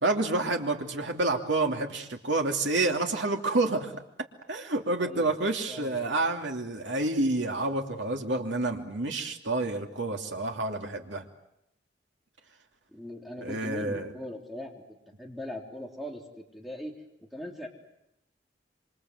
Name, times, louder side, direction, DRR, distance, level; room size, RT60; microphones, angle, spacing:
voice 1, 0.0-3.9 4.5-11.2 13.4-14.1, right 2 dB, 75° right, 3 dB, 2.8 m, -28 dB
voice 2, 5.0-5.3 5.7-5.9 12.9-14.7 15.2-16.2 16.5-16.9 17.3-17.7, equal, ahead, 1 dB, 3.4 m, -39 dB
27.5 x 25.5 x 8.1 m, 0.82 s
head